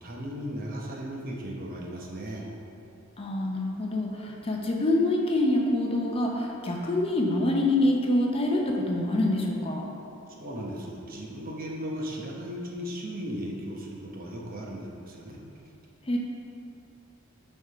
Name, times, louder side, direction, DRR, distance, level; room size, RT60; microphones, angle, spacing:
voice 1, 0.0-2.5 10.4-15.4, equal, 45° right, -2 dB, 0.9 m, -36 dB
voice 2, 3.2-9.9 16.1-16.2, left 1 dB, 25° left, 0 dB, 0.6 m, -26 dB
6.6 x 3.6 x 5.6 m, 2.7 s
head